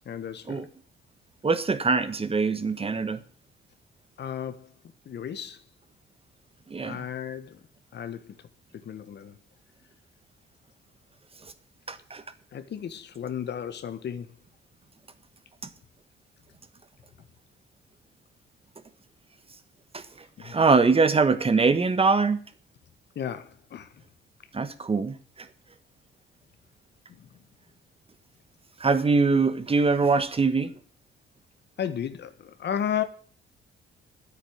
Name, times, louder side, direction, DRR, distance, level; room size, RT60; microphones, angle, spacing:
voice 1, 0.0-0.6 4.2-4.7 5.0-5.6 6.8-7.6 7.9-8.3 8.7-9.4 12.5-14.3 20.4-20.6 23.1-23.9 27.1-27.3 31.8-33.0, left 9 dB, 60° left, 1.4 m, -34 dB
voice 2, 1.4-3.2 6.7-7.0 11.9-12.2 19.9-20.0 20.4-22.4 24.5-25.2 28.8-30.7, right 4 dB, 30° right, 1.4 m, -23 dB
10.0 x 8.3 x 8.8 m
cardioid pair, 90°, 20 cm